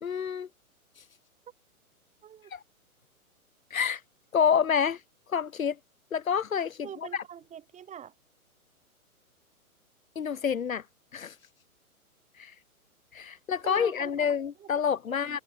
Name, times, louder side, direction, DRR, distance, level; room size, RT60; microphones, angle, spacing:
voice 1, 0.0-0.5 2.5-2.6 3.7-4.0 4.3-5.0 5.3-5.8 6.1-6.9 7.1-7.2 10.2-10.8 11.1-11.4 12.4-12.5 13.1-15.4, left 7 dB, 65° left, 2.0 m, -28 dB
voice 2, 6.8-8.1 13.6-14.7 15.2-15.4, right 9 dB, 15° right, 5.3 m, -44 dB
figure-of-eight pair, 120°, 44 cm